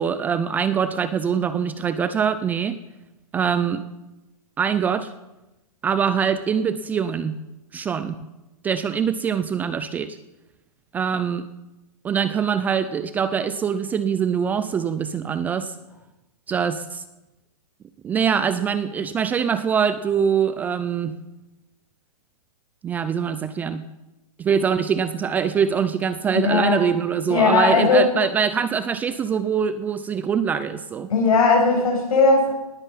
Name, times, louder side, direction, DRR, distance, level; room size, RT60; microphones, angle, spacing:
voice 1, 0.0-2.8 3.3-3.8 4.6-5.1 5.8-7.4 7.7-8.1 8.6-10.2 10.9-11.4 12.0-15.7 16.5-17.0 18.0-21.2 22.8-23.8 24.4-31.1, right 7 dB, 10° right, 12 dB, 0.4 m, -23 dB
voice 2, 26.3-26.8 27.3-28.1 31.1-32.5, left 4 dB, 70° left, 1 dB, 7.5 m, -18 dB
19.5 x 9.6 x 7.5 m, 0.98 s
hypercardioid pair, 150°, 19 cm